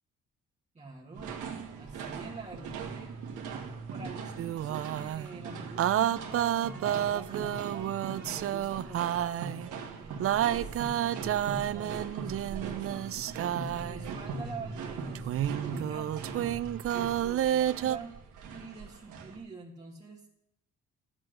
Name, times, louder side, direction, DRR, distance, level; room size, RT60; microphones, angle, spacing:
voice 1, 0.7-1.4 1.8-3.1 3.9-18.2 18.5-20.3, right 3 dB, 20° right, -2 dB, 1.4 m, -47 dB
sound 1, 1.1-19.4, right 5 dB, 80° right, 1.5 m, -40 dB
sound 2, 4.4-5.3 5.8-9.7 10.2-14.1 15.1-18.0, right 11 dB, 50° right, 0.4 m, -30 dB
11.0 x 8.1 x 6.3 m, 0.83 s
cardioid pair, 90°, 30 cm